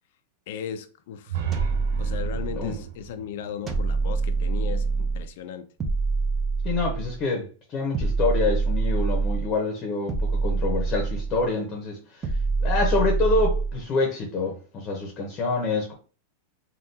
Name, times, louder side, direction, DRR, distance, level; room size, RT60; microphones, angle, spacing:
voice 1, 0.5-1.4 2.0-5.7, left 8 dB, 60° left, 0.4 m, -36 dB
sound 1, 1.3-5.1, right 9 dB, 65° right, 0.5 m, -35 dB
sound 2, 1.5-2.8 3.7-5.3 5.8-7.2 7.9-9.6 10.1-11.5 12.2-13.8, right 4 dB, 20° right, 0.5 m, -25 dB
voice 2, 6.6-12.3 12.6-15.9, left 3 dB, 25° left, 0.8 m, -27 dB
3.5 x 2.3 x 2.7 m
supercardioid pair, 155°, 0 cm